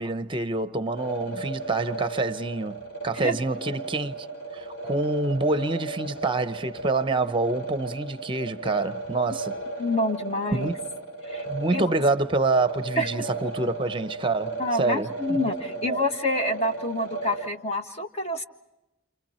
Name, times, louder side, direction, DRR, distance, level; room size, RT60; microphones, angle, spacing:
voice 1, 0.0-4.3 4.5-9.6 10.5-10.7 11.5-15.4 15.8-16.0, right 2 dB, 25° right, 0.8 m, -27 dB
sound 1, 1.0-17.5, right 3 dB, 75° left, 3.1 m, -35 dB
voice 2, 9.8-10.7 11.2-11.4 11.7-11.9 13.0-13.2 14.6-18.4, left 1 dB, 35° left, 1.7 m, -27 dB
30.0 x 29.0 x 4.4 m
head